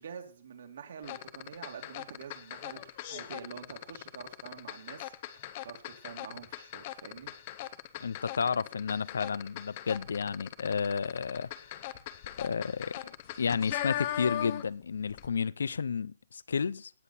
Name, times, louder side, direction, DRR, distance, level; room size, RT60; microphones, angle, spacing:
voice 1, 0.0-5.1 5.4-7.4, right 7 dB, 55° right, 2.5 m, -47 dB
sound 1, 1.0-14.8 15.1-15.3, left 13 dB, 30° left, 0.7 m, -40 dB
voice 2, 8.0-11.9 12.4-16.9, left 6 dB, 80° left, 0.5 m, -32 dB
18.0 x 7.4 x 4.3 m
hypercardioid pair, 170°, 0 cm